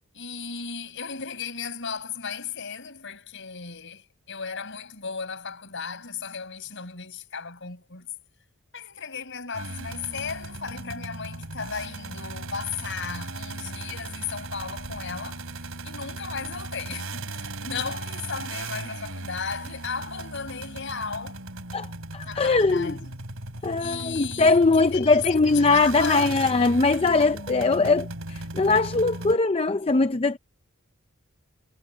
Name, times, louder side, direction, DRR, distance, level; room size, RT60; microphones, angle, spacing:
voice 1, 0.1-8.1 8.7-15.4 15.8-21.4 22.3-23.2 23.8-26.4, left 5 dB, 55° left, 5.7 m, -35 dB
sound 1, 9.5-29.4, right 2 dB, 70° right, 4.3 m, -37 dB
voice 2, 22.1-23.0 23.6-30.4, left 3 dB, 25° left, 0.5 m, -21 dB
head